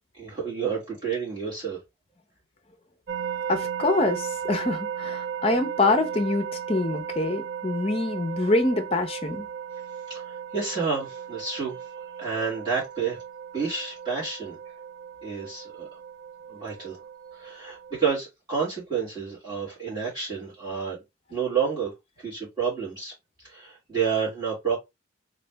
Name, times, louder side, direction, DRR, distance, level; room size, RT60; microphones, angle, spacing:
voice 1, 0.1-1.8 10.1-11.9 12.2-13.2 13.5-14.6 15.2-15.9 16.5-17.0 17.3-21.0 21.3-21.9 22.2-23.1 23.4-24.8, right 6 dB, 20° right, 1.9 m, -29 dB
sound 1, 3.1-18.1, right 8 dB, 55° right, 0.3 m, -36 dB
voice 2, 3.5-9.5, left 2 dB, 30° left, 0.5 m, -25 dB
3.2 x 2.6 x 3.3 m
head